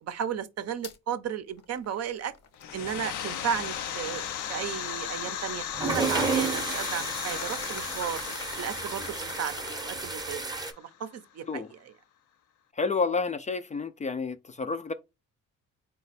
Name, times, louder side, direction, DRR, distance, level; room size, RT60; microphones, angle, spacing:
voice 1, 0.0-2.3 2.7-8.2 8.6-10.4 10.8-11.9, right 8 dB, 55° right, 0.6 m, -34 dB
sound 1, 0.8-1.0 1.5-10.3, left 6 dB, 55° left, 0.8 m, -48 dB
sound 2, 2.6-11.1, left 9 dB, 80° left, 0.6 m, -36 dB
sound 3, 5.7-10.7, right 4 dB, 15° right, 0.7 m, -32 dB
voice 2, 12.7-14.9, left 4 dB, 25° left, 0.4 m, -30 dB
4.1 x 2.2 x 4.0 m
cardioid pair, 90°, 30 cm